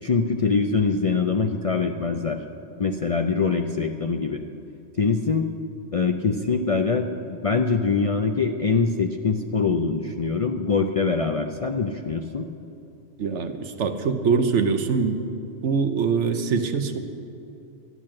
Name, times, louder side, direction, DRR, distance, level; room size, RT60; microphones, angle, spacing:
voice 1, 0.0-2.4 2.8-4.4 5.0-5.5 5.9-12.5, left 4 dB, 45° left, 4 dB, 0.4 m, -23 dB
voice 2, 13.2-15.2 15.6-17.0, right 5 dB, 80° right, 8 dB, 1.2 m, -23 dB
12.5 x 10.5 x 7.5 m, 2.8 s
omnidirectional pair, 1.2 m